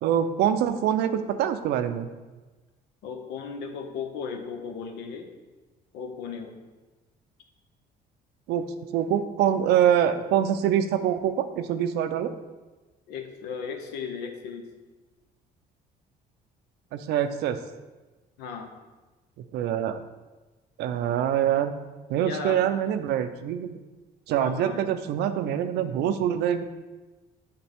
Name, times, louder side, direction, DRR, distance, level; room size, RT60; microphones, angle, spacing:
voice 1, 0.0-2.1 8.5-8.7 8.9-12.3 16.9-17.6 19.5-20.0 20.8-21.7 22.1-23.8 24.3-26.6, right 10 dB, 80° right, 9 dB, 0.5 m, -25 dB
voice 2, 3.0-5.3 5.9-6.6 13.1-14.7 18.4-18.7 22.2-22.6 24.4-24.8, left 6 dB, 80° left, 5 dB, 0.9 m, -36 dB
8.7 x 4.0 x 3.5 m, 1.2 s
cardioid pair, 110°, 17 cm